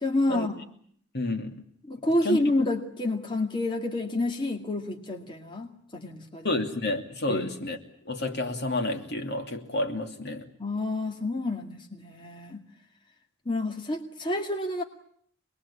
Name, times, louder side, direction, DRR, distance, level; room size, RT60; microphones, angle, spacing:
voice 1, 0.0-0.5 1.9-6.5 7.3-7.5 10.6-12.6 13.5-14.8, left 2 dB, 25° left, 2 dB, 2.2 m, -29 dB
voice 2, 1.1-1.6 2.2-2.4 6.4-7.8 8.1-10.5, left 2 dB, 55° left, 3 dB, 2.9 m, -30 dB
26.0 x 21.0 x 8.6 m, 0.65 s
head